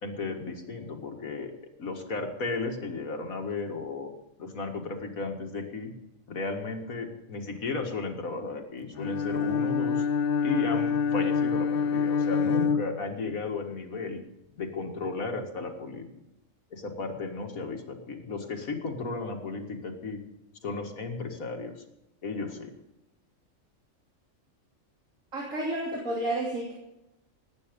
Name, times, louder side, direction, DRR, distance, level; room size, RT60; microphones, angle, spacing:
voice 1, 0.0-1.5 1.8-4.1 4.4-5.9 6.3-10.1 10.4-14.2 14.6-16.1 16.7-20.2 20.6-21.8 22.2-22.7, left 3 dB, 90° left, 4 dB, 2.3 m, -34 dB
Bowed string instrument, 8.9-13.5, left 6 dB, 60° left, 0.6 m, -26 dB
voice 2, 25.3-26.7, right 1 dB, 70° right, -3 dB, 3.5 m, -31 dB
18.5 x 9.3 x 5.3 m, 0.92 s
omnidirectional pair, 1.4 m